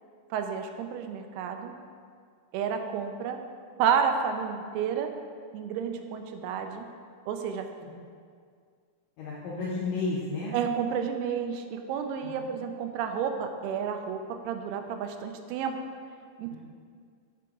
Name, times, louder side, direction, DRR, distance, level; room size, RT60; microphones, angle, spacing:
voice 1, 0.3-1.7 2.5-3.4 3.8-5.1 5.5-6.9 7.3-7.7 10.5-15.8 16.4-16.6, right 7 dB, 85° right, 5 dB, 2.3 m, -30 dB
voice 2, 9.2-10.5 12.2-12.5 16.5-16.6, left 3 dB, 75° left, -6 dB, 2.0 m, -33 dB
7.5 x 5.7 x 3.7 m, 2.1 s
omnidirectional pair, 5.0 m